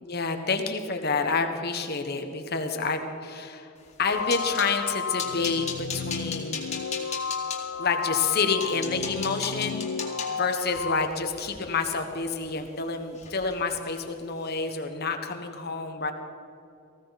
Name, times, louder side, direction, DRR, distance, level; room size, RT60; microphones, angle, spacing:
voice 1, 0.0-3.7 4.0-6.7 7.8-9.9 10.3-16.1, left 4 dB, 50° left, 6 dB, 1.3 m, -28 dB
sound 1, 3.8-4.7 5.2-7.6 8.2-8.3 8.6-12.8 13.1-13.6 13.8-14.0 14.4-14.6, left 6 dB, 30° left, 2.2 m, -37 dB
sound 2, 4.1-11.1, left 6 dB, 65° left, 0.3 m, -33 dB
19.5 x 15.5 x 4.1 m, 2.7 s
head